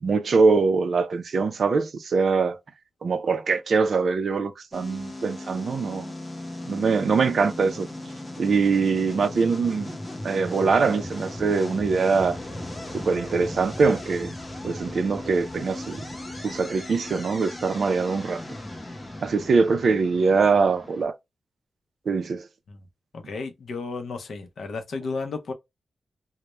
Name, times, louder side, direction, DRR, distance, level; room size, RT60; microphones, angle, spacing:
voice 1, 0.0-2.6 3.0-6.1 6.6-7.9 8.4-10.0 10.2-12.4 12.9-14.3 14.6-16.0 16.4-18.4 19.2-21.1 22.1-22.4, right 4 dB, 55° right, 0.3 m, -23 dB
sound 1, 4.7-21.1, left 1 dB, 15° left, 0.6 m, -37 dB
voice 2, 23.1-25.5, left 4 dB, 65° left, 0.5 m, -33 dB
2.1 x 2.0 x 2.8 m
wide cardioid pair, 165°, 0 cm